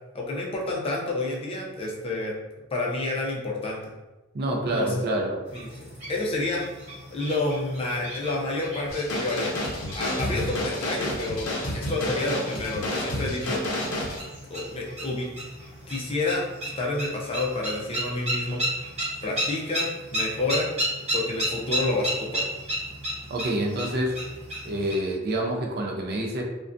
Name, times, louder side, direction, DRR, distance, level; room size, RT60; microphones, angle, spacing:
voice 1, 0.1-2.4 2.7-3.8 4.6-4.9 5.5-6.6 7.1-9.5 9.9-13.6 14.5-15.3 15.9-16.4 16.8-18.6 19.2-20.7 21.1-22.4, left 2 dB, 25° left, -2 dB, 0.4 m, -29 dB
voice 2, 4.3-5.4 23.3-24.2 24.6-26.4, right 1 dB, 50° right, 0 dB, 0.4 m, -27 dB
sound 1, 5.5-25.0, right 1 dB, 30° right, 0.9 m, -34 dB
sound 2, 8.9-14.2, left 1 dB, 70° left, 0.6 m, -30 dB
2.4 x 2.2 x 2.5 m, 1.1 s
head